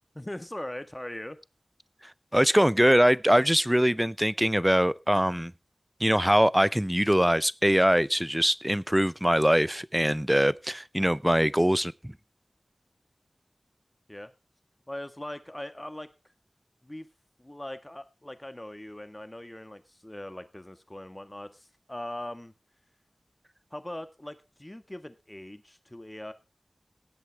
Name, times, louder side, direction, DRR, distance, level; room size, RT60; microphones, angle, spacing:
voice 1, 0.1-1.4 14.1-14.3 14.9-16.3 16.8-17.1 17.4-22.5 23.7-26.3, left 1 dB, 25° left, 1.5 m, -40 dB
voice 2, 2.3-5.5 6.0-12.1, equal, 10° right, 0.5 m, -23 dB
18.0 x 8.2 x 3.4 m
wide cardioid pair, 45°, 0 cm